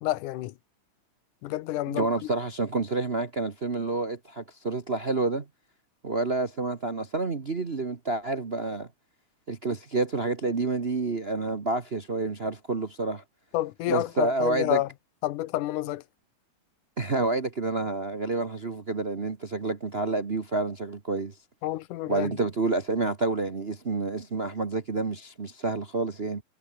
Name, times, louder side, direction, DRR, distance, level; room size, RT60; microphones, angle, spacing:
voice 1, 0.0-0.5 1.4-2.1 13.5-14.9 15.2-16.0 21.6-22.3, left 15 dB, 90° left, 2.4 m, -29 dB
voice 2, 1.9-5.4 6.0-8.9 9.5-13.2 13.9-14.8 17.0-21.3 22.1-26.4, right 3 dB, 60° right, 0.6 m, -29 dB
omnidirectional pair, 3.5 m